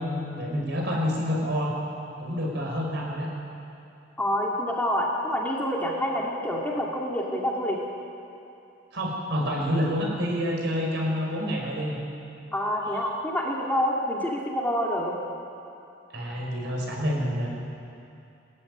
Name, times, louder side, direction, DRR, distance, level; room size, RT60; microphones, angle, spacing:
voice 1, 0.0-1.7 2.2-3.3 8.9-12.0 16.1-17.5, equal, 60° right, -2 dB, 5.3 m, -28 dB
voice 2, 4.2-7.8 12.5-15.2, equal, 10° left, -3 dB, 2.2 m, -27 dB
20.5 x 14.0 x 9.8 m, 2.7 s
head